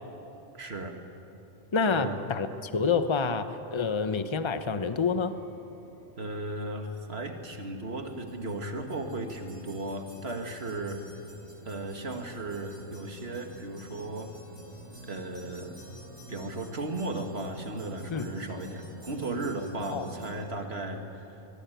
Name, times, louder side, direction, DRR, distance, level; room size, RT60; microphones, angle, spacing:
voice 1, 0.5-1.0 1.9-2.2 6.2-11.0 11.6-14.3 15.0-15.8 16.3-21.4, right 2 dB, 60° right, 5 dB, 2.2 m, -35 dB
voice 2, 1.7-5.3 18.1-18.3 19.9-20.1, left 5 dB, 25° left, 10 dB, 0.9 m, -28 dB
sound 1, 5.1-20.3, equal, 85° right, 5.2 m, -49 dB
22.5 x 22.0 x 9.3 m, 2.9 s
omnidirectional pair, 1.2 m